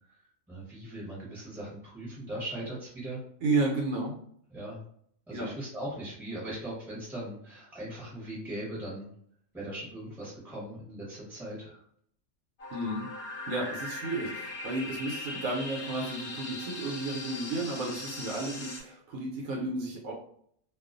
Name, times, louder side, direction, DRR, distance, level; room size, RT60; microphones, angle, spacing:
voice 1, 0.5-3.2 4.5-4.8 5.3-9.1 9.5-11.8, right 1 dB, ahead, -6 dB, 0.7 m, -39 dB
voice 2, 3.4-4.2 5.3-5.5 12.7-13.1 13.5-20.1, right 2 dB, 80° right, -1 dB, 1.0 m, -32 dB
sound 1, 12.6-18.8, left 2 dB, 60° left, 0.8 m, -40 dB
2.3 x 2.3 x 2.4 m, 0.64 s
omnidirectional pair, 1.4 m